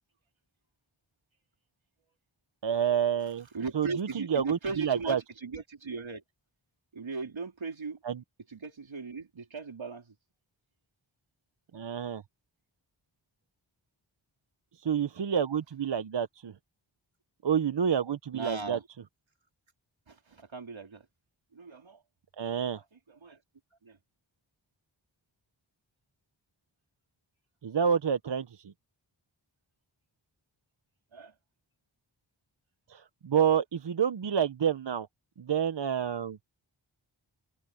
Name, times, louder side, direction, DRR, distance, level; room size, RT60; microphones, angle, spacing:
voice 1, 2.6-3.5 3.7-5.2 8.0-8.2 11.7-12.2 14.8-16.5 17.4-18.8 22.4-22.8 27.6-28.6 32.9-35.1 35.4-36.4, right 8 dB, 65° right, 0.9 m, -28 dB
voice 2, 3.5-6.2 6.9-8.0 8.5-10.1 18.3-18.9 20.1-21.1 21.5-22.0 22.9-23.4 23.8-24.0 31.1-31.3, right 4 dB, 90° right, 4.2 m, -38 dB
wide cardioid pair, 55°, 45 cm